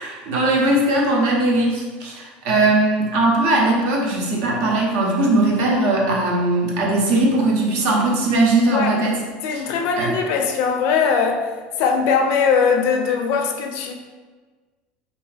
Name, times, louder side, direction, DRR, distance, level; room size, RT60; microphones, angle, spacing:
voice 1, 0.0-9.2 9.5-9.6 10.0-10.1, right 2 dB, 65° right, -2 dB, 0.7 m, -19 dB
voice 2, 9.4-11.5 11.8-13.9, left 5 dB, 60° left, 3 dB, 0.4 m, -20 dB
2.5 x 2.3 x 3.2 m, 1.4 s
hypercardioid pair, 90°, 5 cm